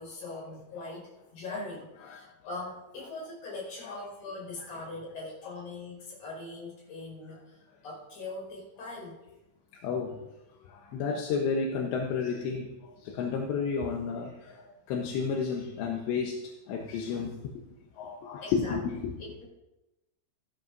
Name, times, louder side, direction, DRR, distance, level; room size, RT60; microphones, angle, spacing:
voice 1, 0.0-7.6 7.8-9.2 18.4-18.8 19.2-19.5, left 3 dB, 40° left, -3 dB, 6.5 m, -41 dB
voice 2, 9.8-10.2 10.6-17.5 18.0-19.1, left 5 dB, 75° left, 0 dB, 2.9 m, -32 dB
16.5 x 13.0 x 2.7 m, 0.98 s
omnidirectional pair, 5.9 m